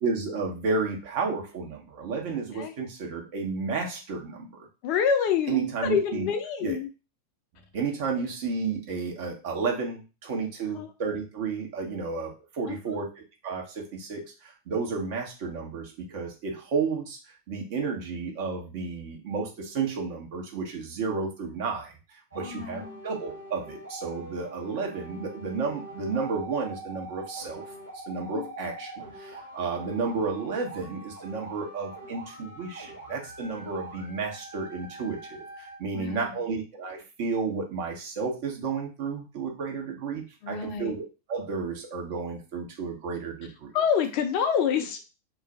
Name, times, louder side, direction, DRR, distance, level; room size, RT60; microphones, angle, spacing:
voice 1, 0.0-4.7 5.5-6.3 6.6-6.8 7.7-17.2 17.5-27.6 27.9-43.7, right 4 dB, 50° right, 1 dB, 0.9 m, -32 dB
voice 2, 4.8-6.9 10.7-10.9 12.7-13.0 22.4-23.0 28.3-28.5 35.9-36.3 40.4-41.0 43.7-45.0, left 7 dB, 45° left, 6 dB, 0.5 m, -27 dB
sound 1, 22.3-35.8, right 2 dB, 85° right, 0.8 m, -43 dB
2.4 x 2.1 x 3.8 m, 0.31 s
figure-of-eight pair, 90°, 0 cm